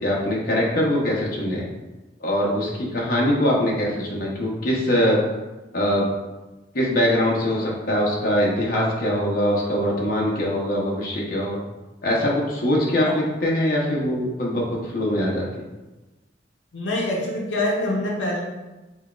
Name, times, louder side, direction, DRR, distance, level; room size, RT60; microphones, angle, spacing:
voice 1, 0.0-1.6 2.2-5.2 5.7-6.1 6.7-11.6 12.0-15.6, left 1 dB, 50° left, -4 dB, 0.8 m, -22 dB
voice 2, 16.7-18.4, left 1 dB, 85° left, -3 dB, 0.7 m, -25 dB
5.5 x 2.3 x 2.3 m, 1.1 s
head